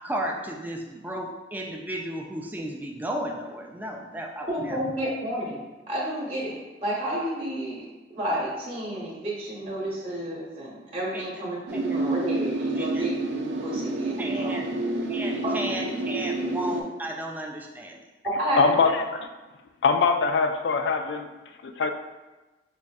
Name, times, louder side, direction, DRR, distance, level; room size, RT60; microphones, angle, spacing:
voice 1, 0.0-4.8 11.1-11.2 11.7-11.8 12.8-13.0 14.2-14.7 15.1-18.0, right 1 dB, 10° right, 1 dB, 0.3 m, -34 dB
voice 2, 4.5-7.9 8.1-14.6 15.4-15.5 15.8-15.9 18.4-18.8, right 1 dB, 35° right, -5 dB, 0.8 m, -31 dB
sound 1, 11.7-16.8, right 2 dB, 80° right, 0.4 m, -29 dB
voice 3, 18.6-19.0 19.8-21.3 21.6-21.9, left 5 dB, 75° left, 6 dB, 0.4 m, -22 dB
5.3 x 2.4 x 2.3 m, 1.1 s
head